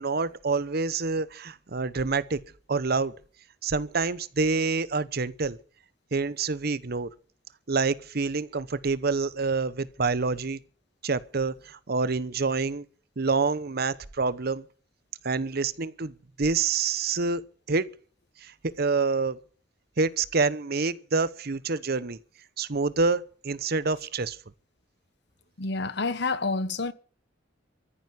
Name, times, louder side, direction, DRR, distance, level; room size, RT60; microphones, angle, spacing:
voice 1, 0.0-2.4 2.7-3.1 3.6-5.6 6.1-7.1 7.7-10.6 11.0-12.8 13.2-14.6 15.2-16.1 16.4-17.4 17.7-17.9 18.4-19.4 20.0-22.2 22.6-24.4, right 4 dB, 55° right, 0.9 m, -27 dB
voice 2, 25.6-26.9, left 3 dB, 65° left, 1.3 m, -28 dB
14.0 x 10.0 x 9.5 m
head